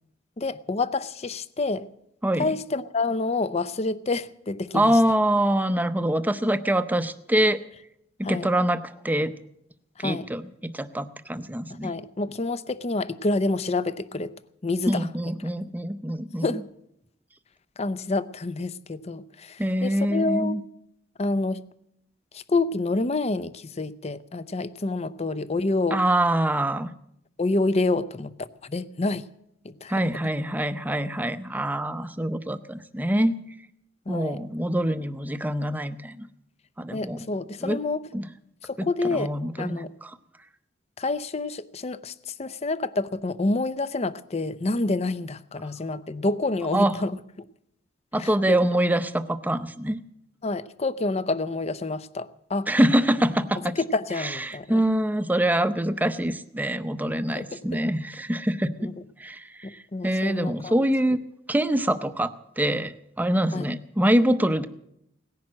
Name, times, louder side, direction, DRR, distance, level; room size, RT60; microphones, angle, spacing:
voice 1, 0.4-1.9 2.4-5.0 8.2-8.5 10.0-10.3 11.8-14.3 14.6-15.1 16.4-16.6 17.8-20.6 21.2-21.6 22.3-26.0 27.4-29.3 29.6-29.9 34.1-34.4 36.9-38.0 38.6-39.9 41.0-47.2 48.2-48.6 50.4-52.7 53.8-54.8 57.3-57.8 58.8-58.9 59.6-60.8 63.5-63.7, left 3 dB, 35° left, 0.6 m, -28 dB
voice 2, 4.7-7.6 8.3-9.3 10.0-11.9 14.9-16.6 19.6-20.6 25.9-26.9 29.9-33.4 34.1-36.3 36.8-37.3 37.6-37.8 38.1-38.3 38.8-40.2 46.7-47.0 48.1-50.0 52.7-53.7 54.2-58.9 59.2-61.2 61.5-64.7, right 1 dB, 10° right, 0.6 m, -25 dB
18.0 x 10.5 x 7.5 m
head